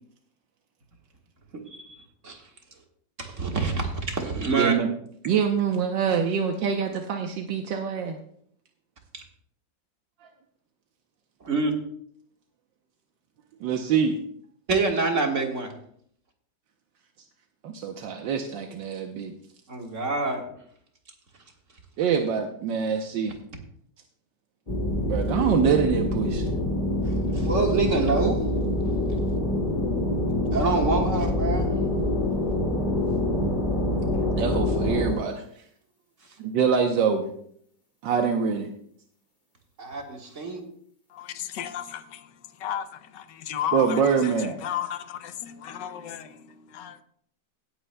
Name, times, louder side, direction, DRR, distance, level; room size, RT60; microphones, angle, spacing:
voice 1, 1.7-2.4 3.2-4.7 9.1-9.2 11.4-11.7 14.7-15.7 19.7-20.4 27.3-28.5 30.5-31.7 39.8-40.6, right 3 dB, 40° right, 1.8 m, -26 dB
voice 2, 4.6-4.9 5.2-8.2 13.6-14.2 17.6-19.3 22.0-23.4 25.1-26.4 34.4-35.4 36.4-37.3 38.0-38.7 43.7-44.6, right 6 dB, 80° right, 1.5 m, -25 dB
sound 1, 24.7-35.1, left 1 dB, 25° left, 2.2 m, -25 dB
voice 3, 41.1-47.0, left 10 dB, 75° left, 1.4 m, -34 dB
17.5 x 9.0 x 2.2 m
omnidirectional pair, 2.0 m